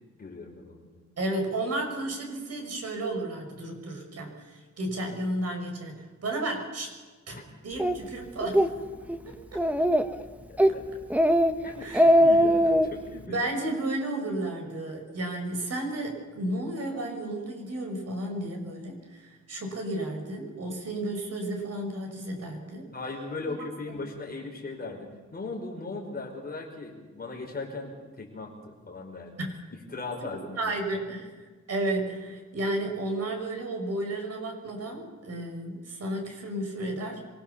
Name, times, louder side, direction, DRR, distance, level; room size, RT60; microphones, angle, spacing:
voice 1, 0.2-1.0 7.3-7.4 10.7-10.8 11.6-13.5 22.9-29.4 29.7-30.7, left 3 dB, 30° left, 1 dB, 5.6 m, -38 dB
voice 2, 1.2-6.9 7.3-7.4 7.6-8.7 9.2-9.6 11.8-12.1 13.3-22.9 23.5-23.6 23.9-24.0 29.4-29.5 30.6-31.3 31.7-37.3, right 1 dB, 55° right, 3 dB, 6.3 m, -33 dB
Speech, 7.8-8.0 8.4-8.7 9.1-9.2 9.6-10.2 10.6-10.8 11.1-11.5 11.8-12.9, equal, 5° right, 1.1 m, -20 dB
28.0 x 23.5 x 7.2 m, 1.3 s
wide cardioid pair, 175°, 29 cm